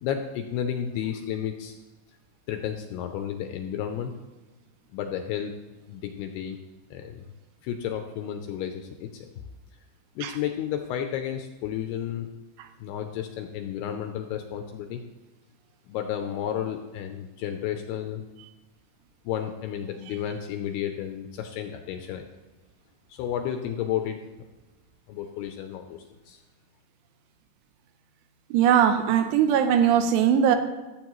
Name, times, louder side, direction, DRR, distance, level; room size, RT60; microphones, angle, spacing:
voice 1, 0.0-1.8 2.5-4.1 4.9-5.5 5.9-6.6 6.9-7.2 7.6-9.3 10.2-12.3 12.8-15.0 15.9-18.3 19.3-22.3 23.1-24.2 25.1-26.4, left 9 dB, 80° left, 6 dB, 2.4 m, -32 dB
voice 2, 28.5-30.6, right 9 dB, 80° right, 8 dB, 2.7 m, -20 dB
15.5 x 7.9 x 3.0 m, 1.1 s
omnidirectional pair, 5.1 m